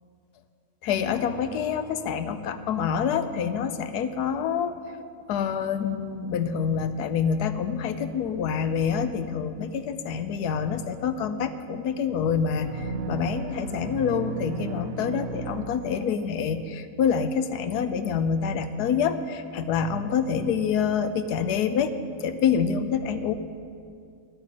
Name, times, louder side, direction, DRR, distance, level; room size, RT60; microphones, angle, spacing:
voice 1, 0.8-4.8 5.3-21.9 22.2-23.3, left 7 dB, 90° left, 11 dB, 1.3 m, -26 dB
Acoustic guitar, 1.1-4.9, equal, 30° left, 0.9 m, -48 dB
sound 1, 12.6-16.4, right 6 dB, 80° right, 0.5 m, -35 dB
10.5 x 9.2 x 8.3 m, 2.3 s
omnidirectional pair, 1.6 m